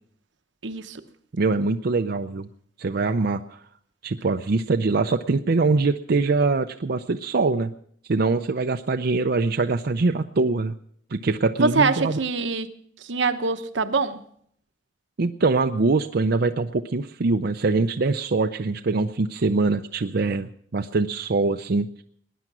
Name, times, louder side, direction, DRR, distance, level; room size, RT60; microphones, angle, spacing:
voice 1, 0.6-1.0 11.6-12.7 13.0-14.2, right 4 dB, 80° right, 8 dB, 1.0 m, -24 dB
voice 2, 1.3-2.5 2.8-3.6 4.0-7.7 8.1-10.7 11.1-12.2 15.2-22.0, right 3 dB, 60° right, 6 dB, 0.6 m, -23 dB
19.0 x 10.5 x 6.1 m, 0.64 s
head